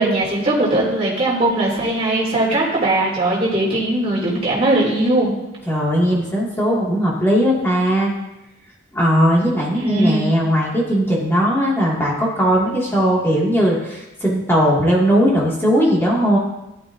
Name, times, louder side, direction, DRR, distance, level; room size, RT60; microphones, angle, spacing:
voice 1, 0.0-5.3 9.8-10.3, right 2 dB, 30° right, -6 dB, 2.8 m, -19 dB
voice 2, 5.7-8.1 8.9-16.4, equal, 10° left, -5 dB, 2.2 m, -18 dB
14.0 x 10.5 x 2.7 m, 0.94 s
head